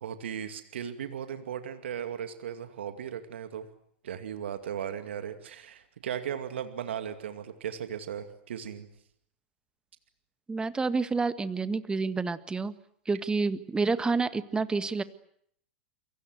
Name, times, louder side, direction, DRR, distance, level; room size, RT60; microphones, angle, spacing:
voice 1, 0.0-3.7 4.0-8.9, right 9 dB, 70° right, 9 dB, 2.4 m, -37 dB
voice 2, 10.5-12.7 13.0-15.0, right 4 dB, 15° right, 13 dB, 1.7 m, -28 dB
29.0 x 23.5 x 8.0 m, 0.68 s
hypercardioid pair, 100°, 6 cm